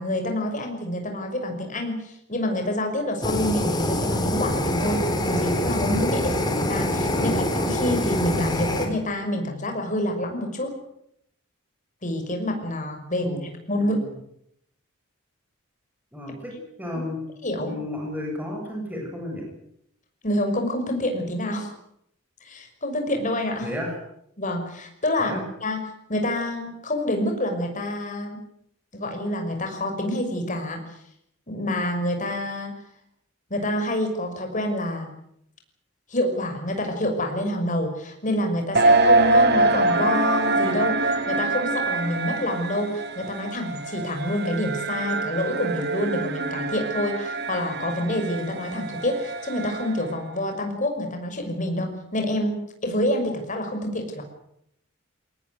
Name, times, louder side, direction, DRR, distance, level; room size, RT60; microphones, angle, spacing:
voice 1, 0.0-10.7 12.0-14.0 17.4-17.8 20.2-21.7 22.4-23.7 24.4-25.8 26.1-28.4 28.9-30.8 31.5-32.7 33.5-35.1 36.1-54.2, left 1 dB, 40° left, 5 dB, 5.9 m, -27 dB
Fire, 3.2-8.9, left 1 dB, 20° left, 4.3 m, -25 dB
voice 2, 7.1-7.5 13.2-13.4 13.8-14.1 16.1-16.5 16.8-17.2 17.6-19.4 23.6-23.9 25.2-25.4, left 1 dB, 10° right, -1 dB, 7.6 m, -33 dB
sound 1, 38.7-50.2, right 2 dB, 55° right, 2.8 m, -24 dB
23.5 x 19.0 x 9.5 m, 0.75 s
head